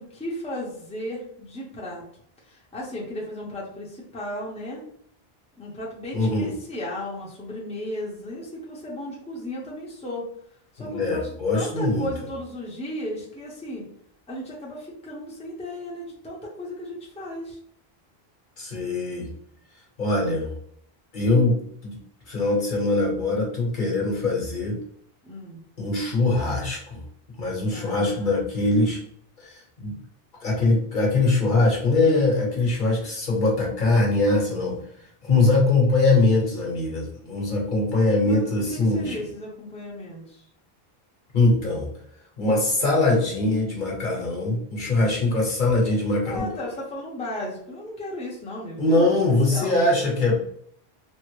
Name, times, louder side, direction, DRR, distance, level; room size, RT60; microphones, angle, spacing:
voice 1, 0.0-2.0 2.4-4.8 5.6-10.3 10.7-13.9 14.3-17.6 25.2-25.6 27.7-28.5 38.2-40.4 44.7-45.1 46.2-49.7, left 1 dB, 5° left, -4 dB, 0.6 m, -35 dB
voice 2, 6.1-6.5 10.8-12.1 18.6-19.3 20.0-20.5 21.1-21.9 22.3-24.8 25.8-27.0 27.4-29.0 29.4-29.9 30.4-34.8 35.2-39.2 41.3-41.9 42.4-46.5 48.8-50.4, left 2 dB, 55° left, -3 dB, 1.1 m, -22 dB
3.3 x 2.0 x 3.0 m, 0.65 s
omnidirectional pair, 1.0 m